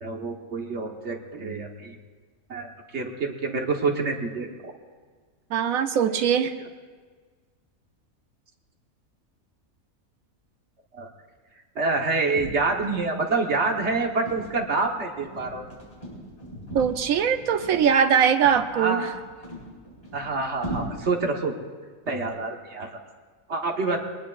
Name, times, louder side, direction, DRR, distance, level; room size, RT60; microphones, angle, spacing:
voice 1, 0.0-1.9 2.5-4.7 10.9-11.1 11.7-15.7 18.7-19.1 20.1-21.5 22.1-22.9 23.5-24.0, right 3 dB, 55° right, 2 dB, 1.5 m, -27 dB
voice 2, 5.5-6.6 16.7-19.1, right 7 dB, 80° right, 8 dB, 1.2 m, -21 dB
sound 1, 12.3-20.8, right 1 dB, 25° left, 4.7 m, -40 dB
21.5 x 19.5 x 2.4 m, 1.5 s
omnidirectional pair, 1.5 m